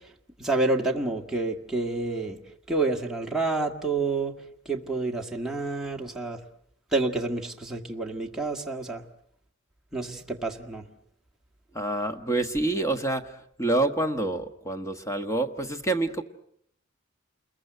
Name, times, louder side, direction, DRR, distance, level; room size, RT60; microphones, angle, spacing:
voice 1, 0.4-2.4 2.7-4.3 4.7-6.4 6.9-9.0 9.9-10.8, right 3 dB, ahead, 0 dB, 1.8 m, -28 dB
voice 2, 11.7-13.3 13.6-16.2, right 2 dB, 15° left, 7 dB, 1.3 m, -27 dB
29.0 x 22.0 x 7.9 m, 0.69 s
head